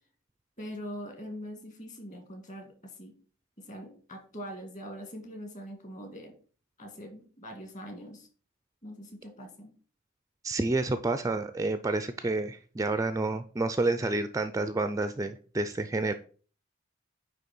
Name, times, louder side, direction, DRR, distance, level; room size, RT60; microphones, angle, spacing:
voice 1, 0.6-3.1 3.6-6.3 6.8-8.3 8.8-9.7, equal, 35° left, 4 dB, 2.1 m, -43 dB
voice 2, 10.4-16.1, right 2 dB, 15° right, 10 dB, 0.3 m, -29 dB
9.2 x 3.3 x 6.0 m, 0.41 s
head